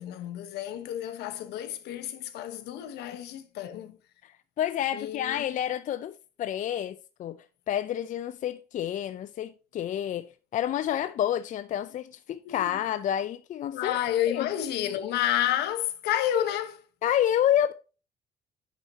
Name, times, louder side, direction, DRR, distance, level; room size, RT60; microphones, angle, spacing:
voice 1, 0.0-4.0 4.9-5.4 12.4-12.8 13.7-16.8, left 11 dB, 80° left, 1.0 m, -30 dB
voice 2, 4.6-7.4 7.7-13.9 14.3-14.5 17.0-17.7, left 10 dB, 50° left, 0.4 m, -29 dB
8.9 x 5.5 x 2.8 m
cardioid pair, 110°, 17 cm